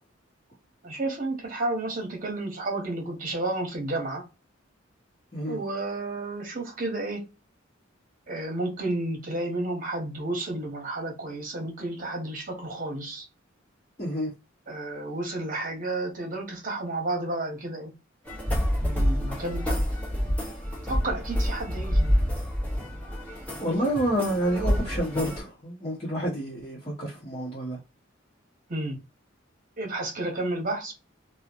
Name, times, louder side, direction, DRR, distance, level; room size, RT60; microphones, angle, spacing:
voice 1, 0.8-4.2 5.5-7.2 8.3-13.3 14.7-17.9 18.8-19.8 20.9-22.2 28.7-29.0 29.8-30.9, right 2 dB, 45° right, 1.2 m, -31 dB
voice 2, 14.0-14.3 23.6-27.8, equal, 30° left, 1.0 m, -29 dB
sound 1, 18.3-25.4, equal, 5° left, 1.0 m, -27 dB
3.1 x 2.3 x 2.5 m
head